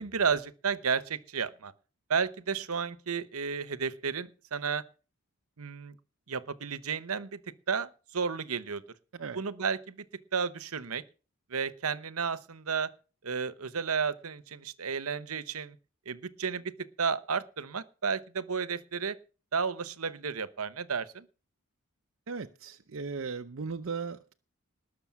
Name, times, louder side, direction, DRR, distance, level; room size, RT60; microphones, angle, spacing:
voice 1, 0.0-1.7 2.1-4.8 5.6-5.9 6.3-7.4 7.7-8.8 9.3-10.0 10.3-11.0 11.5-12.9 13.2-15.8 16.1-16.7 17.0-19.2 19.5-21.3, right 6 dB, 80° right, 0.9 m, -32 dB
voice 2, 22.3-24.3, right 5 dB, 60° right, 0.6 m, -37 dB
19.5 x 6.7 x 5.9 m
head